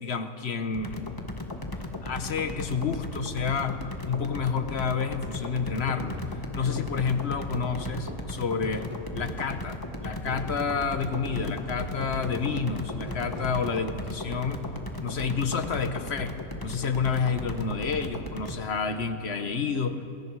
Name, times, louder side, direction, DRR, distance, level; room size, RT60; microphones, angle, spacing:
voice 1, 0.0-1.1 2.0-6.2 6.5-8.9 9.1-14.6 15.0-16.3 16.6-20.1, left 5 dB, 50° left, 8 dB, 1.3 m, -29 dB
sound 1, 0.7-18.6, left 1 dB, 15° left, 1.4 m, -37 dB
sound 2, 5.8-9.7 10.3-14.2, right 1 dB, 10° right, 0.8 m, -43 dB
28.0 x 21.5 x 4.8 m, 2.7 s
omnidirectional pair, 1.4 m